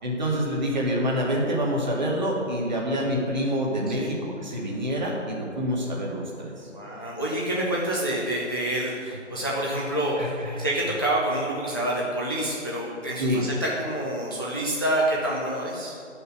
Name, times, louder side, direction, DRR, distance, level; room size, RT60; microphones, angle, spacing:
voice 1, 0.0-6.7 10.2-10.7 13.2-13.4, equal, 35° right, -2 dB, 1.9 m, -27 dB
voice 2, 6.7-16.0, right 1 dB, 20° left, -5 dB, 0.6 m, -27 dB
11.5 x 5.5 x 6.1 m, 2.3 s
figure-of-eight pair, 160°, 38 cm